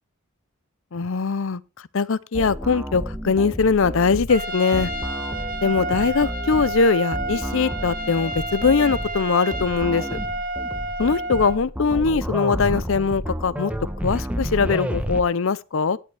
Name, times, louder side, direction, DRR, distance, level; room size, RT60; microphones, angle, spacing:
voice 1, 0.9-1.6 1.9-4.9 5.6-10.2 11.0-13.7 14.0-16.0, left 5 dB, 60° left, 0.6 m, -21 dB
sound 1, 2.3-15.2, equal, 5° right, 1.0 m, -31 dB
Trumpet, 4.3-11.6, right 2 dB, 40° right, 1.4 m, -30 dB
17.5 x 9.0 x 3.4 m
head